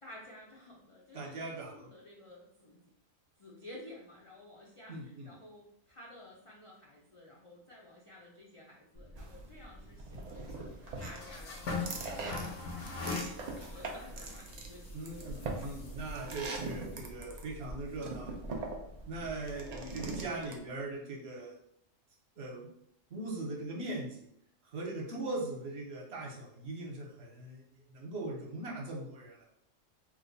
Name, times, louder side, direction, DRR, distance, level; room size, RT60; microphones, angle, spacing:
voice 1, 0.0-2.8 3.4-10.7 11.0-12.0 12.2-12.5 12.8-15.5, left 1 dB, 55° left, -4 dB, 0.3 m, -53 dB
voice 2, 1.1-1.9 4.9-5.3 14.9-18.4 19.1-21.5 22.4-22.7 23.1-24.3 24.7-29.4, right 2 dB, 60° right, -2 dB, 1.0 m, -40 dB
sound 1, 8.9-20.2, left 3 dB, 75° left, 1.1 m, -44 dB
sound 2, 9.2-20.6, right 3 dB, 85° right, 0.3 m, -42 dB
3.0 x 2.1 x 3.8 m, 0.74 s
omnidirectional pair, 1.3 m